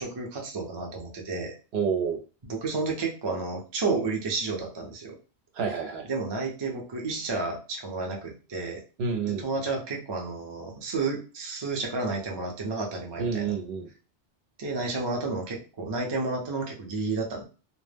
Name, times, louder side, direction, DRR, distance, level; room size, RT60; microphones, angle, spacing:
voice 1, 0.0-1.5 2.4-5.2 6.1-8.8 9.3-13.5 14.6-17.4, right 3 dB, 35° right, 1 dB, 0.4 m, -31 dB
voice 2, 1.7-2.2 5.6-6.1 9.0-9.5 13.2-13.9, right 6 dB, 70° right, 3 dB, 0.8 m, -28 dB
2.1 x 2.0 x 3.2 m, 0.34 s
omnidirectional pair, 1.2 m